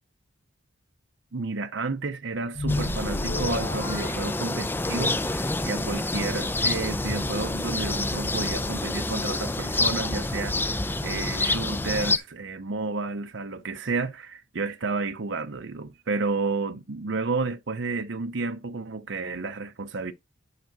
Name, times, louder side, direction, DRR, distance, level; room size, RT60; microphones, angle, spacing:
voice 1, 1.3-20.1, right 3 dB, 60° right, 0.7 m, -31 dB
sound 1, 2.5-5.1, left 2 dB, 50° left, 2.5 m, -32 dB
sound 2, 2.7-12.2, left 2 dB, 10° left, 0.5 m, -28 dB
11.0 x 4.7 x 4.0 m
head